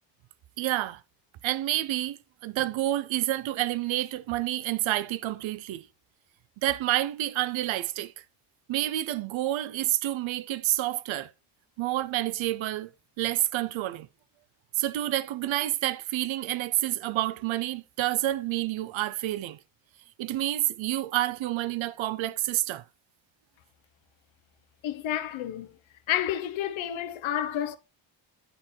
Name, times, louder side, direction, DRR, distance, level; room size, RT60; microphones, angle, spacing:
voice 1, 0.6-1.0 1.4-2.2 2.4-5.9 6.6-8.1 8.7-11.3 11.8-12.9 13.2-14.1 14.8-19.6 20.2-22.8, right 14 dB, 80° right, 0.7 m, -28 dB
voice 2, 24.8-25.8 26.1-27.8, left 11 dB, 80° left, 1.0 m, -30 dB
10.0 x 4.4 x 4.4 m
cardioid pair, 165°, 46 cm